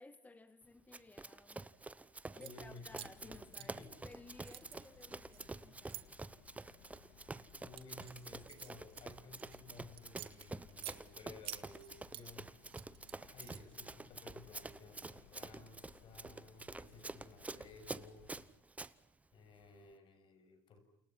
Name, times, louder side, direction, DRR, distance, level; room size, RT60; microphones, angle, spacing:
voice 1, 0.0-1.7 2.3-6.1, left 2 dB, 15° left, 10 dB, 1.6 m, -58 dB
Run, 0.9-18.9, right 3 dB, 15° right, 1.0 m, -48 dB
sound 1, 2.2-2.5 2.9-4.1 4.4-6.0 6.7-7.0 7.5-9.6 10.0-11.0 11.4-12.3 12.6-13.8, right 15 dB, 65° right, 1.7 m, -50 dB
voice 2, 2.3-3.9 5.4-5.8 7.6-12.7 13.2-18.3 19.3-20.8, left 3 dB, 55° left, 8 dB, 7.1 m, -56 dB
sound 2, 2.7-18.5, left 10 dB, 80° left, 2.4 m, -64 dB
29.0 x 28.5 x 5.9 m, 0.79 s
supercardioid pair, 85°, 10 cm